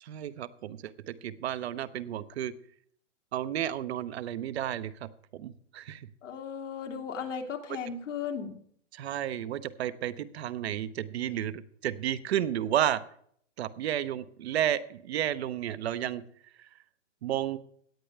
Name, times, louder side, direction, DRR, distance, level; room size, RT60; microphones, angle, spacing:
voice 1, 0.0-2.5 3.3-6.1 7.7-7.8 8.9-13.0 13.6-16.2 16.6-16.7 17.2-17.6, right 11 dB, 60° right, 13 dB, 0.9 m, -32 dB
voice 2, 6.2-8.6, left 6 dB, 80° left, 3 dB, 2.7 m, -36 dB
17.0 x 10.0 x 3.4 m, 0.64 s
hypercardioid pair, 140°, 37 cm